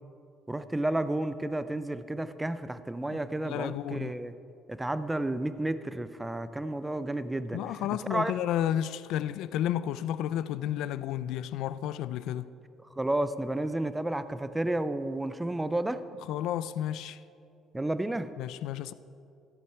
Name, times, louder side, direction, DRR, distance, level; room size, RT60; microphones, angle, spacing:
voice 1, 0.5-4.3 4.7-7.6 8.1-8.3 13.0-16.0 17.7-18.3, right 1 dB, 5° right, 0.3 m, -31 dB
voice 2, 3.4-4.1 7.5-12.5 16.3-17.2 18.4-18.9, left 11 dB, 70° left, 0.3 m, -32 dB
13.5 x 8.5 x 4.7 m
cardioid pair, 170°, 0 cm